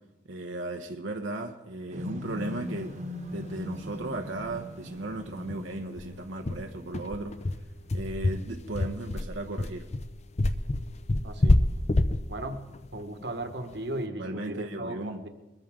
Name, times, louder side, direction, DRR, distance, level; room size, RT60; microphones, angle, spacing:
voice 1, 0.3-2.9 3.3-7.3 7.9-9.8 14.2-15.2, right 2 dB, 85° right, 3 dB, 1.0 m, -36 dB
sound 1, 1.9-7.2, left 1 dB, 40° right, 1.2 m, -40 dB
sound 2, 3.6-3.7 4.0-4.1 4.4-4.6 4.9-5.0 5.5-13.9, left 2 dB, 35° left, 0.6 m, -27 dB
voice 2, 11.2-11.6 12.3-12.6 12.9-15.3, right 1 dB, 60° right, 6 dB, 1.3 m, -36 dB
22.0 x 13.5 x 3.7 m, 1.1 s
head